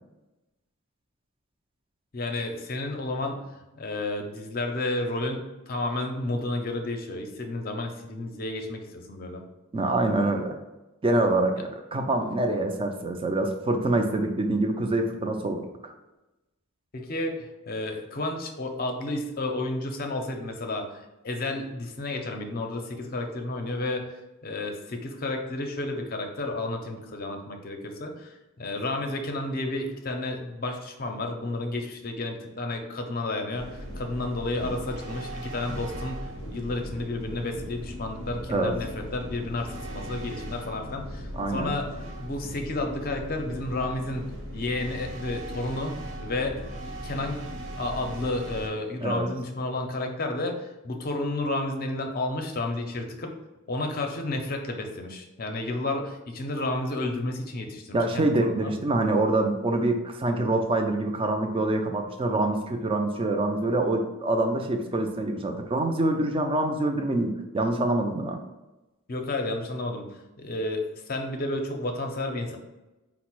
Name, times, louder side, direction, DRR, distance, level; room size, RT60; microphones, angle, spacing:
voice 1, 2.1-3.4 3.7-9.4 16.9-24.1 24.4-41.9 42.2-45.9 46.2-47.4 47.8-50.6 50.8-53.3 53.7-58.7 69.1-70.1 70.4-72.6, left 2 dB, 40° left, 3 dB, 0.6 m, -31 dB
voice 2, 9.7-10.6 11.0-15.7 38.5-38.8 41.3-41.7 49.0-49.3 57.9-68.4, right 2 dB, 25° right, 4 dB, 0.4 m, -25 dB
sound 1, 33.6-48.7, equal, 60° right, 0.9 m, -38 dB
4.8 x 2.0 x 4.5 m, 1.0 s
head